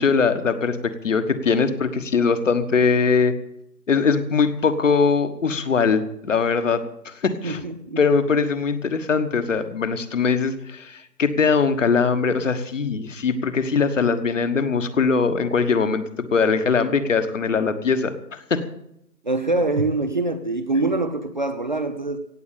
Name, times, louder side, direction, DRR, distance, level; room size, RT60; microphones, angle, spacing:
voice 1, 0.0-3.3 3.9-7.6 8.0-18.6, left 5 dB, 50° left, 10 dB, 1.4 m, -21 dB
voice 2, 7.4-8.0 19.2-22.2, right 2 dB, 30° right, 10 dB, 0.7 m, -24 dB
17.0 x 8.1 x 8.5 m, 0.78 s
figure-of-eight pair, 150°, 49 cm